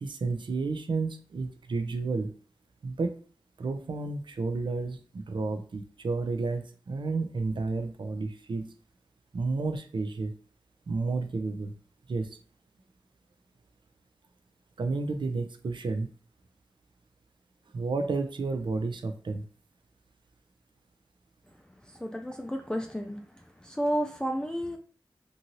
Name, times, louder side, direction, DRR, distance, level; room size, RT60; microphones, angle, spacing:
voice 1, 0.0-2.3 2.8-3.2 3.6-8.7 9.3-10.3 10.9-11.7 12.1-12.4 14.8-16.1 17.7-19.5, right 3 dB, 70° right, 7 dB, 0.4 m, -31 dB
voice 2, 22.0-23.2 23.6-24.8, equal, 10° left, 2 dB, 0.4 m, -31 dB
2.6 x 2.6 x 2.9 m, 0.42 s
cardioid pair, 45°, 9 cm